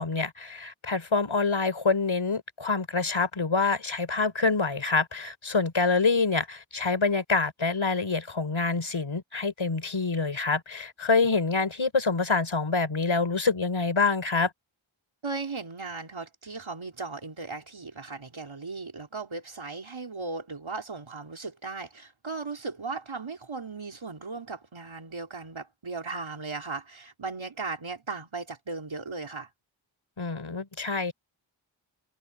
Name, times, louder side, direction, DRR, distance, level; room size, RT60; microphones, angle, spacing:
voice 1, 0.0-14.5 30.2-31.1, left 4 dB, 75° left, 3.7 m, -26 dB
voice 2, 15.2-29.5, right 4 dB, 80° right, 3.9 m, -37 dB
wide cardioid pair, 45°, 47 cm